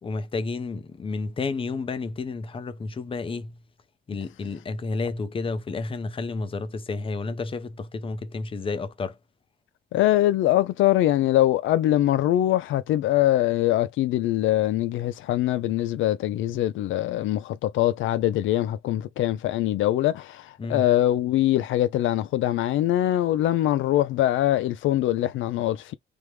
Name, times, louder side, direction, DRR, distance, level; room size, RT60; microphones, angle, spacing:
voice 1, 0.0-3.6 4.1-9.2 20.6-20.8, left 3 dB, 25° left, 0.6 m, -31 dB
voice 2, 9.9-25.9, left 13 dB, 70° left, 0.4 m, -23 dB
3.4 x 2.1 x 3.1 m
cardioid pair, 90°, 21 cm